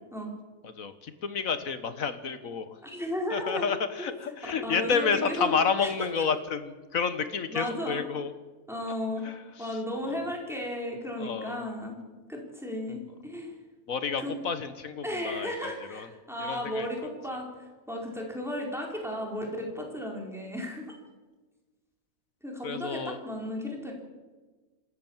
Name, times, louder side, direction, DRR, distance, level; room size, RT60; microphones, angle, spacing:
voice 1, 0.6-2.8 3.3-8.3 9.2-9.8 10.0-10.2 11.2-11.6 13.9-16.1 16.4-16.9 22.6-23.2, left 6 dB, 65° left, 11 dB, 1.7 m, -30 dB
voice 2, 2.8-3.6 4.0-4.1 4.6-5.5 5.8-5.9 7.5-8.0 8.7-9.3 9.6-12.0 12.3-13.5 14.2-14.4 15.0-20.8 22.4-23.9, left 1 dB, ahead, 0 dB, 4.6 m, -34 dB
26.5 x 13.5 x 7.4 m, 1.3 s
omnidirectional pair, 1.5 m